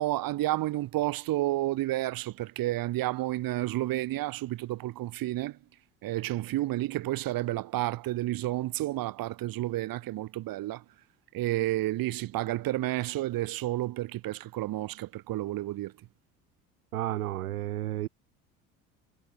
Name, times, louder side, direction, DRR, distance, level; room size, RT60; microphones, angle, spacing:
voice 1, 0.0-5.6 6.0-10.8 11.3-15.9, right 16 dB, 55° right, 2.7 m, -31 dB
voice 2, 16.9-18.1, right 15 dB, 85° right, 0.8 m, -32 dB
hypercardioid pair, 70°, 42 cm